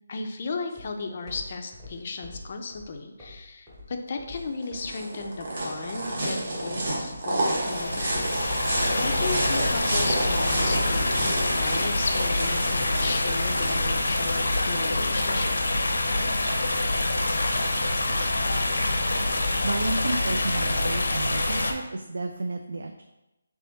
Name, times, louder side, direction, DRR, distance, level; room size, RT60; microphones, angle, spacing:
voice 1, 0.1-8.2 8.8-15.6, left 4 dB, 35° left, 5 dB, 0.4 m, -35 dB
sound 1, 0.7-19.7, left 1 dB, 10° right, 0.7 m, -47 dB
sound 2, 4.4-15.2, right 1 dB, 45° right, 1.1 m, -30 dB
sound 3, 7.5-21.7, left 2 dB, 80° left, 0.7 m, -26 dB
voice 2, 19.6-23.0, right 2 dB, 75° right, 5 dB, 0.3 m, -31 dB
3.5 x 3.1 x 3.9 m, 0.96 s
hypercardioid pair, 175°, 0 cm